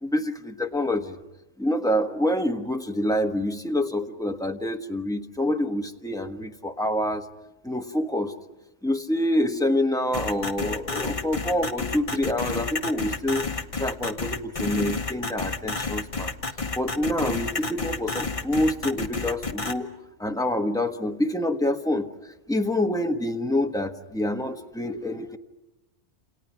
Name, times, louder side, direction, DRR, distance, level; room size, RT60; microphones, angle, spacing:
voice 1, 0.0-1.2 1.6-7.3 7.6-8.3 8.8-13.5 13.7-16.3 16.7-19.9 20.2-22.1 22.5-25.4, left 1 dB, 5° left, 4 dB, 1.3 m, -26 dB
sound 1, 10.1-19.7, left 3 dB, 30° left, 1.2 m, -30 dB
28.5 x 28.0 x 6.0 m, 1.0 s
omnidirectional pair, 1.2 m